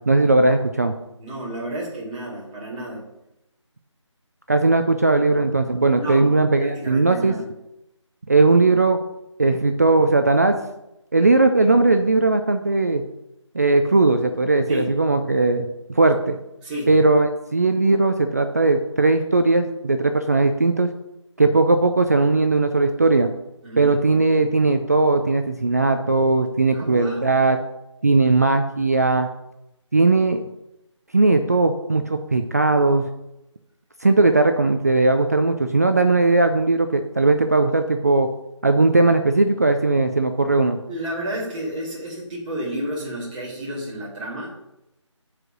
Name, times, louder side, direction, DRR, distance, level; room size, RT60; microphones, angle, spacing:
voice 1, 0.1-0.9 4.5-7.3 8.3-9.0 9.4-10.6 11.1-13.0 13.5-16.4 16.9-20.9 21.4-23.3 23.8-27.6 28.0-29.3 29.9-30.4 31.1-33.0 34.0-38.3 38.6-40.8, right 3 dB, 30° right, 7 dB, 0.4 m, -18 dB
voice 2, 1.2-3.1 6.0-6.3 6.6-7.4 14.7-14.8 16.6-16.9 23.6-24.2 26.7-27.2 40.9-44.5, right 1 dB, 15° right, -7 dB, 2.3 m, -31 dB
7.6 x 4.8 x 6.1 m, 0.88 s
figure-of-eight pair, 160°, 16 cm